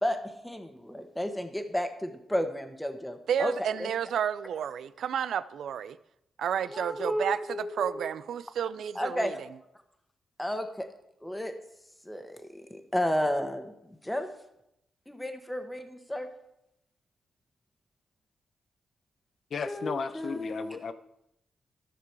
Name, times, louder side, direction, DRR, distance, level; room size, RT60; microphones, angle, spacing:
voice 1, 0.0-3.5 3.8-3.9 6.7-8.1 8.9-9.3 10.4-10.9 11.2-11.5 12.0-14.3 15.1-16.3 19.7-20.9, equal, 5° left, 1.3 m, -32 dB
voice 2, 3.3-6.0 6.4-7.4 7.8-9.3, right 8 dB, 80° right, 0.4 m, -31 dB
voice 3, 19.5-20.9, left 5 dB, 60° left, 0.6 m, -34 dB
13.5 x 6.0 x 4.7 m
cardioid pair, 80°, 0 cm